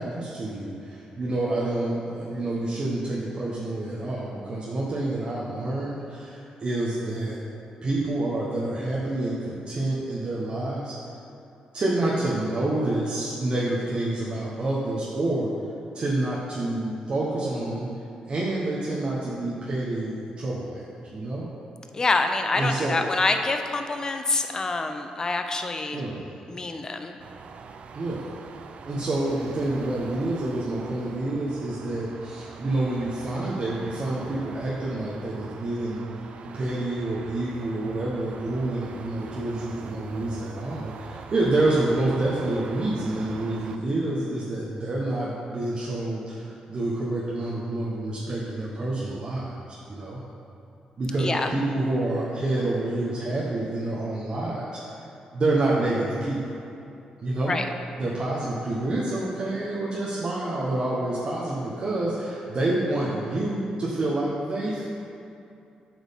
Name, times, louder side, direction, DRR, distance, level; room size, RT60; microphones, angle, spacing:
voice 1, 0.0-7.4 7.8-11.0 11.7-15.5 15.9-17.9 18.3-20.8 21.1-21.5 22.5-23.0 25.9-26.3 27.9-28.3 28.8-36.0 36.4-50.2 51.0-55.0 55.3-56.4 57.2-57.6 58.0-64.9, right 2 dB, 40° right, -6 dB, 1.0 m, -28 dB
voice 2, 21.9-26.0 26.5-27.2 51.2-51.5 57.5-57.7, left 3 dB, 30° left, 6 dB, 0.5 m, -26 dB
sound 1, 27.2-43.8, right 5 dB, 60° right, 0.4 m, -43 dB
8.2 x 6.2 x 3.6 m, 2.7 s
cardioid pair, 105°, 2 cm